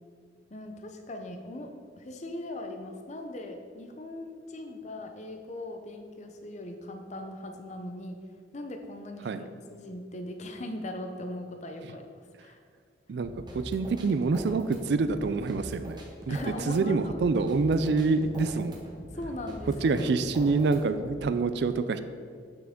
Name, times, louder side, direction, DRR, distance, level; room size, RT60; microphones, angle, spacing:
voice 1, 0.5-8.3 8.5-12.6 16.3-17.5 19.1-20.1, left 1 dB, 40° left, 5 dB, 0.7 m, -40 dB
voice 2, 13.1-16.0 16.3-16.4 16.7-18.8 19.8-22.0, right 4 dB, 65° right, 11 dB, 0.4 m, -26 dB
sound 1, 13.2-21.2, equal, 25° right, 1.0 m, -43 dB
8.4 x 5.9 x 3.7 m, 2.1 s
head